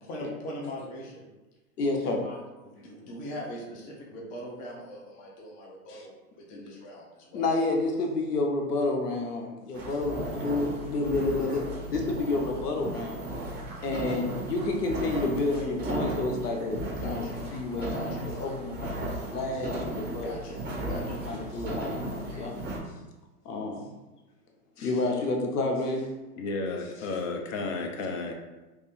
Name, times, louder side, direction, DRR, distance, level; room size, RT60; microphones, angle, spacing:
voice 1, 0.0-1.3 2.0-7.4 16.9-17.4 17.8-18.2 18.9-19.0 20.2-20.6 20.9-21.2, equal, 20° left, -2 dB, 0.6 m, -41 dB
voice 2, 1.8-2.2 6.5-6.6 7.3-13.2 13.8-17.2 17.5-20.4 21.3-22.5 23.4-23.9 24.8-26.0, left 2 dB, 85° left, 2 dB, 0.9 m, -30 dB
sound 1, 9.7-22.8, right 1 dB, 20° right, 1.0 m, -35 dB
voice 3, 26.4-28.3, left 3 dB, 55° left, 3 dB, 0.8 m, -32 dB
3.2 x 2.6 x 3.6 m, 1.1 s
hypercardioid pair, 120°, 45 cm